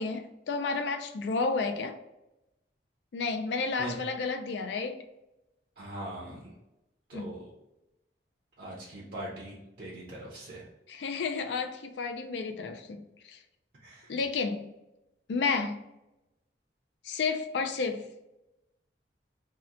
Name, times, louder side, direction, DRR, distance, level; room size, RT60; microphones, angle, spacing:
voice 1, 0.0-2.0 3.1-5.0 7.1-7.4 10.9-13.4 14.1-14.7 15.3-15.9 17.0-18.1, left 4 dB, 75° left, 0.4 m, -31 dB
voice 2, 5.8-6.5 7.1-7.5 8.6-10.7 13.8-14.2, right 1 dB, 55° right, 0.7 m, -41 dB
2.8 x 2.2 x 3.5 m
head